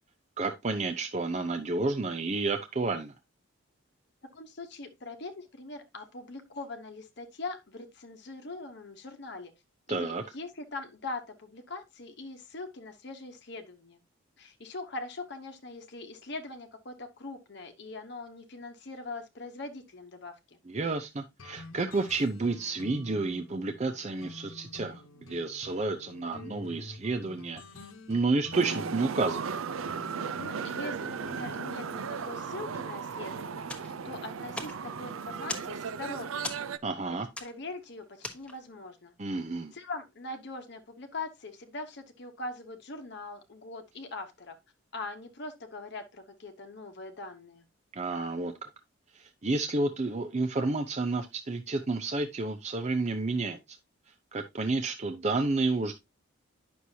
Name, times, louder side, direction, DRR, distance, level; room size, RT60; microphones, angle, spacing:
voice 1, 0.4-3.1 9.9-10.2 20.7-27.6 28.1-29.4 36.8-37.3 39.2-39.7 47.9-48.7 49.1-53.8 54.3-55.9, right 3 dB, 35° right, 0.5 m, -30 dB
voice 2, 4.2-9.5 9.9-14.0 14.4-20.6 30.4-36.7 37.1-39.1 39.7-44.6 44.9-47.6, left 3 dB, 55° left, 1.0 m, -42 dB
sound 1, 21.4-32.7, left 2 dB, 80° left, 1.0 m, -49 dB
sound 2, 28.5-36.8, right 6 dB, 80° right, 0.5 m, -36 dB
sound 3, 33.7-38.8, left 2 dB, 5° left, 1.1 m, -42 dB
9.7 x 6.2 x 2.7 m
head